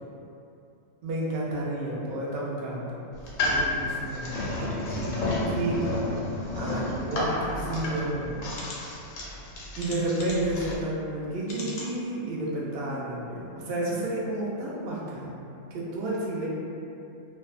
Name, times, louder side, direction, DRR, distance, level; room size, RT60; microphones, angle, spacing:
voice 1, 1.0-3.0 3.4-6.0 6.6-8.6 9.8-15.3 15.7-16.5, right 1 dB, 70° right, -5 dB, 0.5 m, -31 dB
sound 1, 3.1-10.8, left 1 dB, 90° left, 1.1 m, -31 dB
sound 2, 8.5-8.8 9.8-10.6 11.4-11.9 12.5-12.6 12.9-13.0, left 2 dB, 65° left, 0.7 m, -40 dB
2.6 x 2.1 x 2.3 m, 2.7 s
omnidirectional pair, 1.5 m